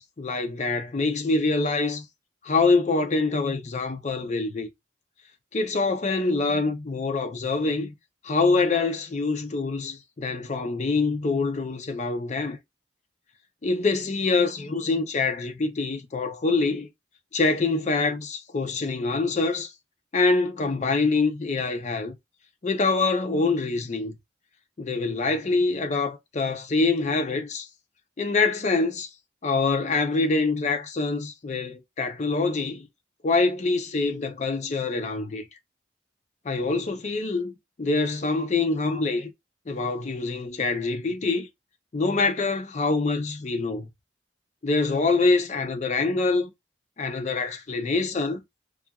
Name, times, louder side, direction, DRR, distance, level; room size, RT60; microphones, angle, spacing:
voice 1, 0.0-2.1 2.4-4.7 5.5-7.9 8.2-12.6 13.6-16.9 17.3-19.7 20.1-22.2 22.6-24.1 24.8-27.7 28.2-29.1 29.4-32.9 33.2-35.4 36.5-37.5 37.8-39.3 39.7-41.5 41.9-43.9 44.6-46.5 47.0-48.4, left 3 dB, 40° left, 0.5 m, -25 dB
2.4 x 2.3 x 2.7 m
head